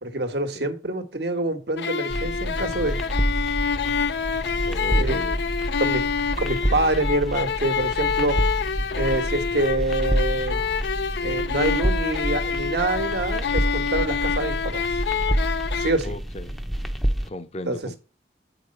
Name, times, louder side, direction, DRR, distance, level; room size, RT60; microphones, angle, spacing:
voice 1, 0.0-3.0 4.9-5.2 5.8-6.0 6.4-8.4 8.9-10.6 11.2-14.9 15.7-16.2 17.7-17.8, right 2 dB, 65° right, 1.3 m, -26 dB
sound 1, 1.8-15.9, left 6 dB, 65° left, 0.5 m, -27 dB
sound 2, 2.1-17.3, equal, ahead, 0.7 m, -28 dB
voice 2, 4.4-5.4 16.0-16.6 17.2-18.0, left 1 dB, 35° left, 0.8 m, -36 dB
8.6 x 5.0 x 5.3 m
head